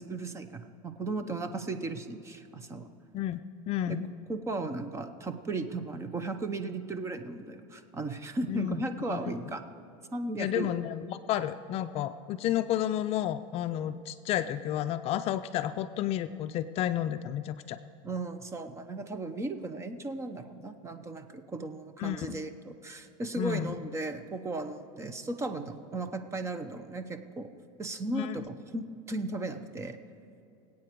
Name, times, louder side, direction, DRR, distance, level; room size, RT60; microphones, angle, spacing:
voice 1, 0.0-2.9 3.9-4.0 4.3-9.6 10.1-10.7 18.0-27.5 27.8-30.0, right 2 dB, 15° right, 9 dB, 0.8 m, -36 dB
voice 2, 3.7-4.1 8.5-8.8 9.1-9.2 10.4-17.8 22.0-22.4 23.4-23.7 28.1-28.4, left 11 dB, 40° left, 10 dB, 0.4 m, -31 dB
24.0 x 8.6 x 4.6 m, 2.7 s
supercardioid pair, 140°, 16 cm